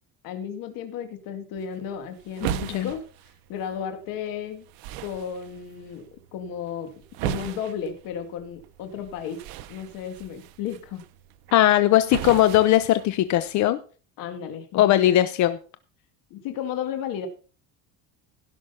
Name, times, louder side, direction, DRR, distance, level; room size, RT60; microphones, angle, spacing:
voice 1, 0.2-3.0 3.5-4.7 5.0-6.1 6.3-6.9 7.2-9.4 9.7-11.0 14.2-15.1 16.3-17.3, left 8 dB, 70° left, 7 dB, 2.1 m, -33 dB
sound 1, 1.6-13.6, right 14 dB, 80° right, 0.9 m, -38 dB
voice 2, 2.4-2.9 11.5-13.8 14.7-15.6, left 13 dB, 55° left, 13 dB, 0.8 m, -19 dB
16.5 x 6.2 x 5.6 m, 0.38 s
cardioid pair, 150°, 35 cm